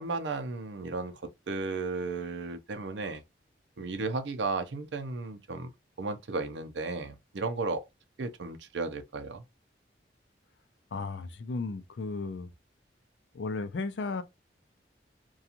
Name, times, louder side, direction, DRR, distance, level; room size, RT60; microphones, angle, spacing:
voice 1, 0.0-3.2 3.8-5.7 6.0-7.8 8.2-9.4, right 3 dB, 90° right, 0.5 m, -34 dB
voice 2, 10.9-12.5 13.3-14.2, left 3 dB, 80° left, 0.4 m, -34 dB
2.8 x 2.3 x 2.4 m
head